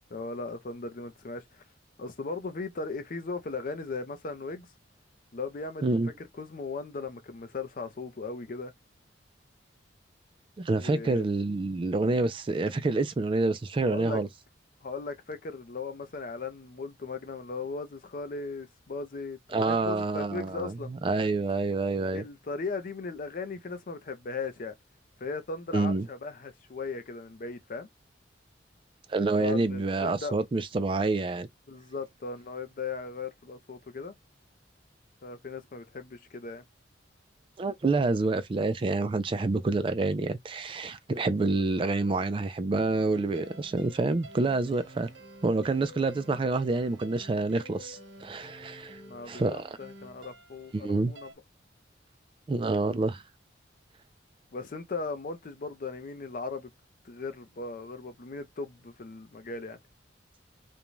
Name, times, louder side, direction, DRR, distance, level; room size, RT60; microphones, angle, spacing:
voice 1, 0.1-1.6 2.0-4.7 5.3-8.7 10.7-11.2 13.8-14.2 14.8-20.9 22.1-24.8 25.2-27.9 29.3-30.4 31.7-34.1 35.2-36.6 41.4-41.6 42.0-42.1 49.0-51.3 54.5-56.7 57.0-59.8, left 4 dB, 45° left, 0.5 m, -37 dB
voice 2, 10.6-14.3 19.5-20.7 21.0-22.2 25.7-26.1 29.1-31.5 37.6-45.1 45.4-49.0 49.3-49.7 50.7-51.1 52.5-53.2, right 3 dB, 30° right, 0.3 m, -27 dB
sound 1, 43.1-51.3, equal, 80° right, 1.1 m, -50 dB
2.5 x 2.2 x 3.0 m
head